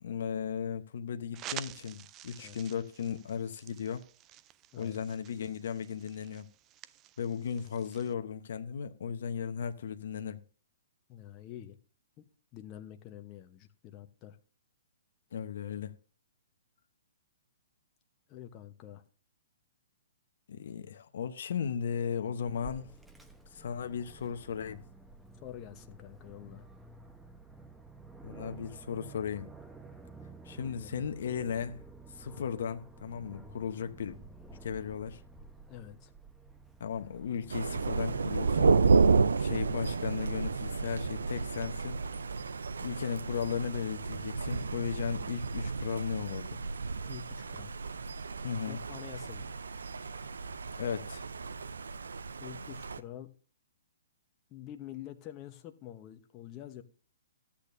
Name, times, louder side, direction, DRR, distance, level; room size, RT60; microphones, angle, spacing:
voice 1, 0.0-4.0 4.8-6.5 7.2-10.4 15.3-15.9 20.5-22.9 23.5-24.8 28.2-29.5 30.4-31.8 32.1-34.2 34.6-35.2 36.8-38.8 39.4-42.0 42.8-46.6 48.4-48.8 50.8-51.2, left 7 dB, 65° left, 0.8 m, -36 dB
sound 1, 1.3-8.1, right 12 dB, 25° right, 0.4 m, -49 dB
voice 2, 4.7-5.0 11.1-11.8 12.2-12.3 12.5-14.4 18.3-19.0 25.4-26.7 30.6-30.9 35.7-36.1 47.1-47.7 48.7-49.5 52.4-53.3 54.5-56.8, left 12 dB, 30° left, 0.9 m, -47 dB
Aircraft, 22.5-38.9, right 3 dB, 5° right, 0.9 m, -51 dB
Thunder, 37.5-53.0, right 4 dB, 80° right, 0.5 m, -31 dB
13.5 x 8.5 x 2.6 m
hypercardioid pair, 130°, 0 cm